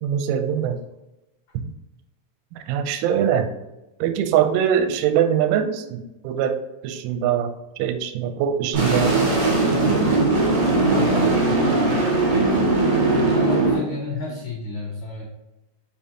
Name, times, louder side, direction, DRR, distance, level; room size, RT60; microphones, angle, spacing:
voice 1, 0.0-0.8 1.5-1.7 2.5-3.5 4.0-9.2 13.0-13.3, right 9 dB, 85° right, 8 dB, 3.0 m, -23 dB
sound 1, 8.7-13.8, right 3 dB, 65° right, 1.9 m, -19 dB
voice 2, 10.7-12.2 13.1-15.2, left 3 dB, 85° left, -5 dB, 1.7 m, -31 dB
6.4 x 5.6 x 2.9 m, 0.94 s
omnidirectional pair, 5.7 m